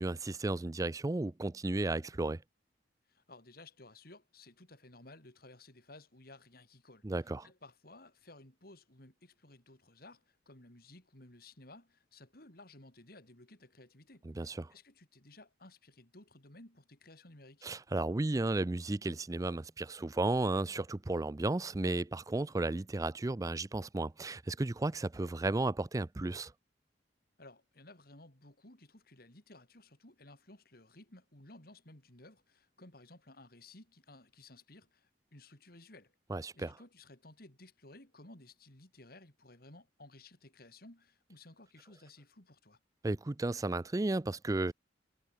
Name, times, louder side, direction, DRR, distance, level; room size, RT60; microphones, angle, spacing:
voice 1, 0.0-2.4 7.0-7.5 14.3-14.7 17.6-26.5 36.3-36.7 43.0-44.7, right 2 dB, 20° right, 0.4 m, -34 dB
voice 2, 3.1-17.7 27.4-36.1 36.5-42.8, left 2 dB, 55° left, 4.3 m, -56 dB
head